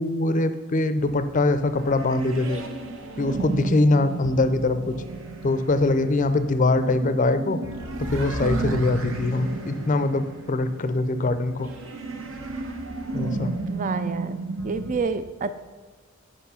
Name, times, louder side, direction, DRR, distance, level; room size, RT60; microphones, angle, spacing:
voice 1, 0.0-2.6 3.2-5.0 5.4-7.6 8.1-11.7 13.1-13.5, left 2 dB, 35° left, 11 dB, 0.5 m, -23 dB
sound 1, 1.0-15.0, right 2 dB, 65° right, 1.0 m, -34 dB
voice 2, 8.4-8.8 13.6-14.4 14.6-15.5, right 4 dB, 35° right, 12 dB, 0.4 m, -28 dB
8.2 x 6.2 x 5.6 m, 1.4 s
head